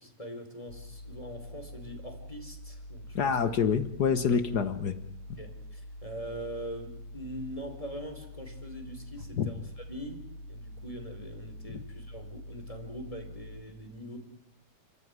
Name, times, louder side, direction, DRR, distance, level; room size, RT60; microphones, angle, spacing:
voice 1, 0.0-3.2 5.4-14.2, equal, 10° left, 3 dB, 4.3 m, -42 dB
sound 1, 0.7-13.6, left 1 dB, 50° left, 3.3 m, -46 dB
voice 2, 3.1-5.0 9.4-9.5 11.7-11.8, left 6 dB, 80° left, 11 dB, 0.9 m, -27 dB
30.0 x 14.5 x 9.6 m, 0.75 s
omnidirectional pair, 3.7 m